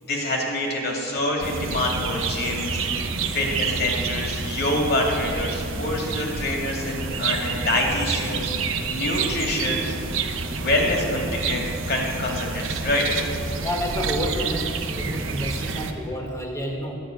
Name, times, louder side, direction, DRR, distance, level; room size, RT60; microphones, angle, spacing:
voice 1, 0.1-2.9 3.3-8.5 8.9-9.9 10.5-13.1, left 1 dB, 55° left, -1 dB, 2.5 m, -26 dB
sound 1, 1.4-15.9, right 4 dB, 80° right, 0.8 m, -28 dB
voice 2, 13.6-14.7 15.0-16.9, equal, 15° left, 1 dB, 1.6 m, -29 dB
12.5 x 6.5 x 9.4 m, 2.6 s
head